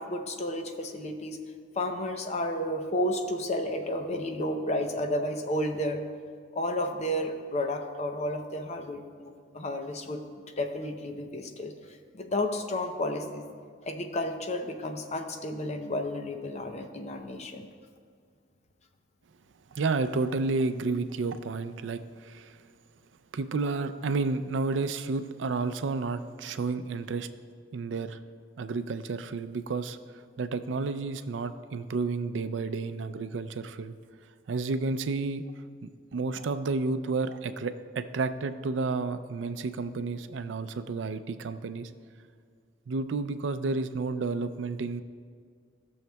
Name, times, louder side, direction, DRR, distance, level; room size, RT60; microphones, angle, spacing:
voice 1, 0.0-1.4 1.8-6.0 6.5-10.2 10.6-11.7 12.1-13.4 13.9-17.7, left 1 dB, 40° left, 5 dB, 0.7 m, -32 dB
voice 2, 19.7-22.6 23.3-27.3 27.7-28.2 28.6-30.0 30.4-33.9 34.5-35.4 35.8-41.9 42.9-45.0, right 3 dB, 90° right, 11 dB, 0.4 m, -31 dB
17.0 x 6.4 x 2.3 m, 2.1 s
head